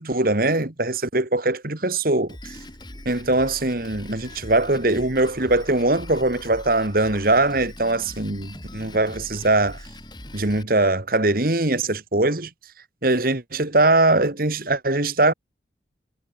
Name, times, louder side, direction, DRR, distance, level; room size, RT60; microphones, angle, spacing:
voice 1, 0.0-2.4 3.1-9.8 10.3-12.5 13.0-15.3, right 2 dB, 50° right, 2.0 m, -21 dB
Drum kit, 2.3-10.6, left 1 dB, 25° left, 5.8 m, -41 dB
head